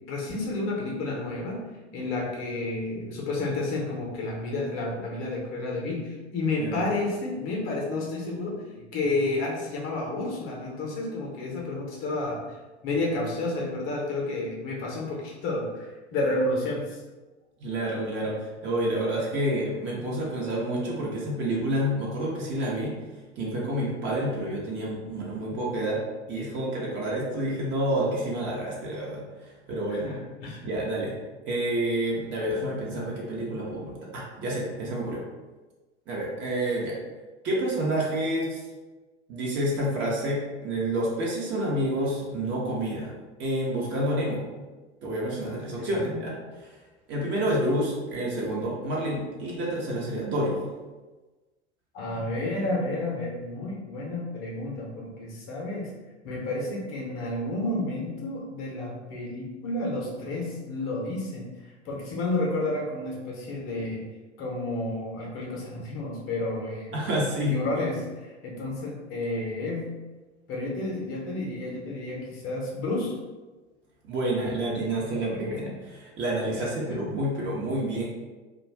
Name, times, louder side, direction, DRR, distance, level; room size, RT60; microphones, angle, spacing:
voice 1, 0.1-1.6 1.9-12.4 12.8-17.0 29.9-30.6 45.8-46.2 51.9-55.9 56.2-61.5 61.8-64.1 64.4-67.1 67.4-69.9 70.5-73.2 76.6-77.0, left 2 dB, 35° left, -2 dB, 0.7 m, -31 dB
voice 2, 17.6-22.9 23.4-26.0 26.3-30.1 30.6-31.1 31.5-35.2 36.1-37.0 37.4-38.6 39.3-43.1 43.4-44.5 45.0-46.8 47.1-50.6 66.9-67.5 74.0-78.0, right 1 dB, 30° right, -4 dB, 0.8 m, -29 dB
2.4 x 2.3 x 3.3 m, 1.2 s
figure-of-eight pair, 85°, 35 cm